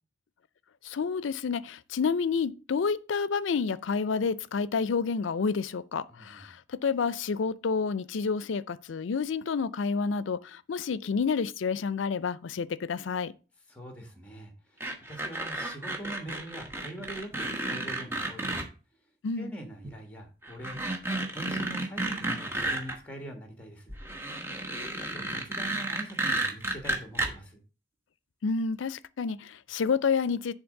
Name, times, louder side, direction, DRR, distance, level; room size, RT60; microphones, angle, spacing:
voice 1, 0.8-13.3 19.2-19.5 28.4-30.5, left 5 dB, 85° left, 0.5 m, -29 dB
voice 2, 6.1-6.5 13.7-14.8 15.1-18.7 19.4-20.8 21.3-23.9 25.1-27.6, right 1 dB, 5° left, 1.5 m, -43 dB
sound 1, 14.8-18.6 19.8-19.9 20.4-22.9 23.9-27.3, right 2 dB, 10° right, 1.1 m, -32 dB
7.2 x 3.9 x 6.4 m
head